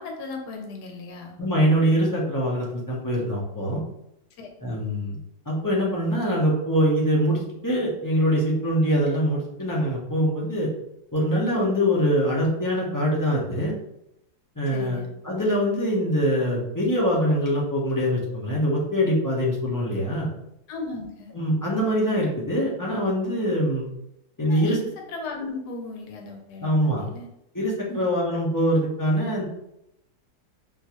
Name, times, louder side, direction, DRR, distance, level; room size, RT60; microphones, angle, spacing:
voice 1, 0.0-1.4 4.4-4.5 14.7-15.1 20.7-21.3 24.4-24.8 25.1-27.3 27.9-28.1, left 3 dB, 85° left, 2 dB, 1.2 m, -36 dB
voice 2, 1.4-3.8 4.6-5.2 5.5-10.7 11.1-13.7 14.6-15.0 15.2-20.3 21.3-23.8 24.4-24.8 26.6-27.0 27.5-29.5, equal, 30° left, -5 dB, 0.4 m, -23 dB
3.7 x 2.5 x 2.9 m, 0.81 s
omnidirectional pair, 1.7 m